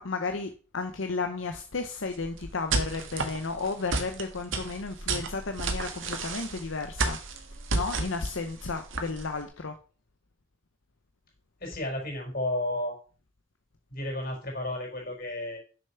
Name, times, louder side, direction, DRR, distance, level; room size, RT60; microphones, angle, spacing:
voice 1, 0.0-7.2 7.7-9.8, left 4 dB, 80° left, 0.8 m, -33 dB
sound 1, 2.1-9.4, right 3 dB, 80° right, 1.7 m, -32 dB
voice 2, 11.6-13.0 13.9-15.6, left 1 dB, 50° left, 4.5 m, -32 dB
6.9 x 6.8 x 5.7 m
head